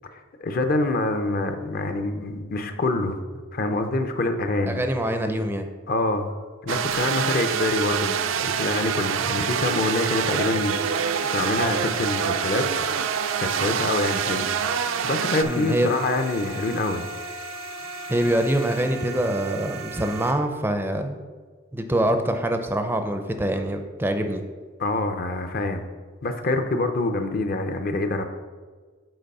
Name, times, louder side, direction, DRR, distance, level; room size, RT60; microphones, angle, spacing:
voice 1, 0.1-3.2 3.5-4.8 5.9-6.3 6.6-10.8 11.3-14.5 15.0-17.1 24.8-25.8 26.2-28.3, left 2 dB, 45° left, 7 dB, 0.6 m, -26 dB
voice 2, 4.7-5.7 15.4-15.9 18.1-21.2 21.7-24.4, right 1 dB, 10° right, 6 dB, 0.4 m, -24 dB
sound 1, 6.7-15.4, right 8 dB, 75° right, 0.4 m, -26 dB
sound 2, 6.9-20.3, right 3 dB, 90° right, 0.9 m, -36 dB
7.8 x 4.2 x 5.3 m, 1.5 s
head